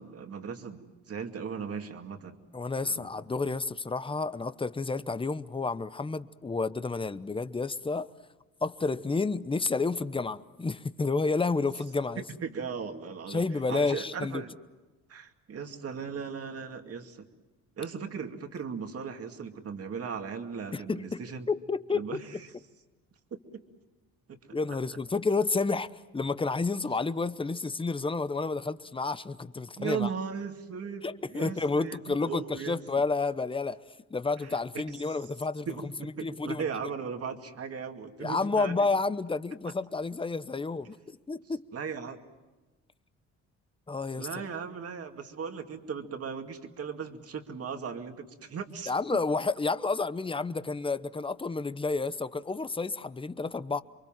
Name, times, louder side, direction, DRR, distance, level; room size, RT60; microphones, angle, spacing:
voice 1, 0.0-2.4 2.8-3.1 12.2-14.5 15.1-17.3 17.8-21.5 21.9-22.5 23.5-23.6 29.8-32.8 34.4-35.1 35.7-38.9 41.7-42.2 44.2-48.9, right 6 dB, 50° right, 2.4 m, -37 dB
voice 2, 2.5-8.1 8.6-12.2 13.3-14.4 20.7-22.2 24.5-30.1 31.0-33.8 34.1-35.7 36.0-36.6 38.2-41.0 41.3-41.6 43.9-44.3 48.9-53.8, left 3 dB, 15° left, 0.9 m, -30 dB
28.0 x 23.5 x 7.5 m
cardioid pair, 90°, 30 cm